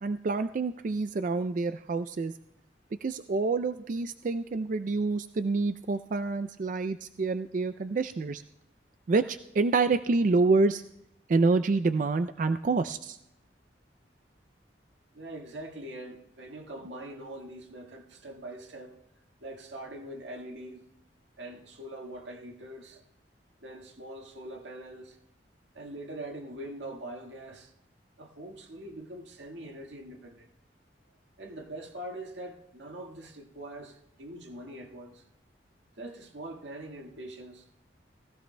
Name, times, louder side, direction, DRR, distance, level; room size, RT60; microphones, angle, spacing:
voice 1, 0.0-2.3 3.0-8.4 9.1-10.8 11.3-13.2, right 3 dB, 45° right, 0.3 m, -27 dB
voice 2, 15.1-19.0 19.4-20.8 21.4-23.0 23.6-25.2 25.7-27.7 28.2-30.5 31.4-35.2 36.0-37.7, right 1 dB, 90° right, 1.7 m, -43 dB
20.0 x 15.0 x 2.2 m
head